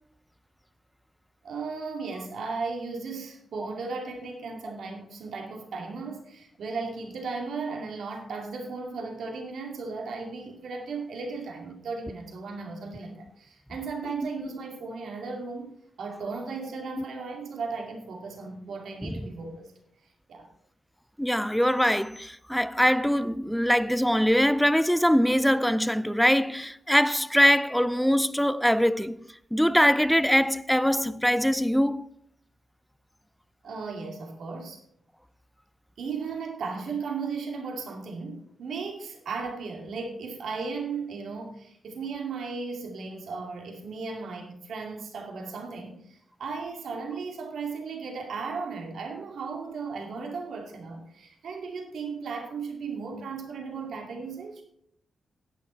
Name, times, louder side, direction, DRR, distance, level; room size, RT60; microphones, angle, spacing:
voice 1, 1.4-19.7 20.3-20.5 33.6-34.8 36.0-54.6, right 4 dB, 80° right, 2.3 m, -36 dB
voice 2, 21.2-29.2 29.5-32.1, equal, ahead, 0.4 m, -23 dB
10.5 x 9.5 x 4.4 m
wide cardioid pair, 175°, 0 cm